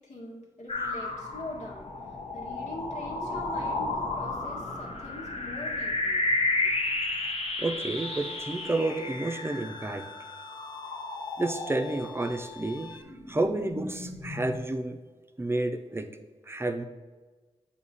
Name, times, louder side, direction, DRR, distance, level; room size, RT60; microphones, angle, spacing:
voice 1, 0.0-1.9 2.3-6.2, left 1 dB, 75° left, -2 dB, 1.4 m, -42 dB
sound 1, 0.7-12.5 13.0-14.6, left 2 dB, 55° left, 0.9 m, -33 dB
voice 2, 7.6-10.1 11.4-15.0 15.4-16.1 16.5-16.8, right 2 dB, 20° right, 7 dB, 0.6 m, -30 dB
Bowed string instrument, 8.0-13.0, left 5 dB, 35° left, 0.5 m, -46 dB
8.0 x 2.9 x 4.1 m, 1.3 s
cardioid pair, 55°, 12 cm